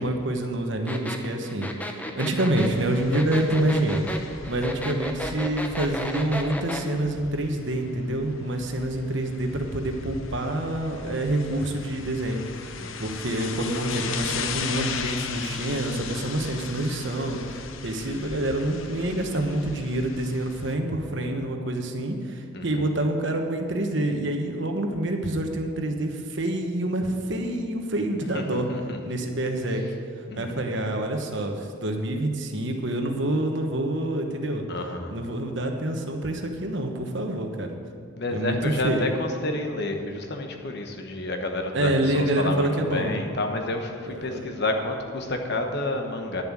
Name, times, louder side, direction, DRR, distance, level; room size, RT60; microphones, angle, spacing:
voice 1, 0.0-1.7 2.1-4.0 4.5-12.4 13.0-28.7 29.0-29.8 30.4-34.6 35.1-37.7 38.3-39.0 41.7-43.2 44.0-44.4, right 1 dB, 60° right, 4 dB, 1.1 m, -27 dB
sound 1, 0.9-6.9, left 1 dB, 5° left, 0.7 m, -33 dB
sound 2, 2.6-20.8, left 6 dB, 70° left, 0.7 m, -38 dB
voice 2, 12.8-13.1 22.5-22.7 28.3-29.0 30.3-30.6 34.7-35.1 38.2-46.4, left 2 dB, 50° left, 4 dB, 1.1 m, -30 dB
11.0 x 7.2 x 7.5 m, 2.2 s
head